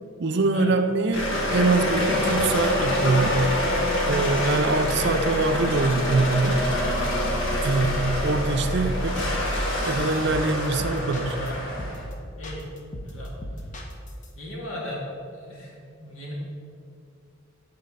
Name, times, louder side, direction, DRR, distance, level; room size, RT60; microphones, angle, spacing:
voice 1, 0.2-3.4 4.1-6.6 7.6-7.9 8.2-9.2 9.9-11.4, right 3 dB, 55° right, 8 dB, 0.5 m, -24 dB
sound 1, 1.1-12.0, left 1 dB, 65° left, 1.5 m, -26 dB
sound 2, 9.2-9.5 9.8-11.5 11.8-12.1 12.4-14.3, equal, 40° left, 0.8 m, -37 dB
voice 2, 14.4-16.3, left 1 dB, 90° left, -4 dB, 2.0 m, -37 dB
8.7 x 4.2 x 5.3 m, 2.3 s
head